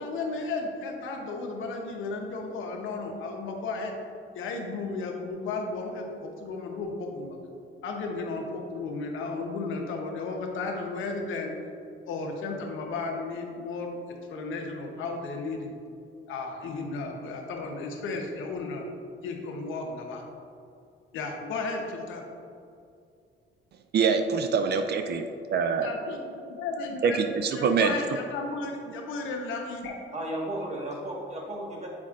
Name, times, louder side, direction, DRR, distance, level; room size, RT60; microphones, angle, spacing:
voice 1, 0.0-3.9 4.3-7.4 7.8-11.5 12.1-14.0 14.3-15.8 16.3-18.8 19.2-20.2 21.1-22.2 25.8-27.2 27.6-30.0, left 3 dB, 85° left, 2 dB, 0.9 m, -34 dB
voice 2, 23.9-25.9 27.0-27.9, right 6 dB, 55° right, 7 dB, 0.4 m, -25 dB
voice 3, 30.1-31.9, right 1 dB, 35° right, -2 dB, 1.4 m, -34 dB
7.3 x 5.2 x 2.4 m, 2.4 s
cardioid pair, 90°, 20 cm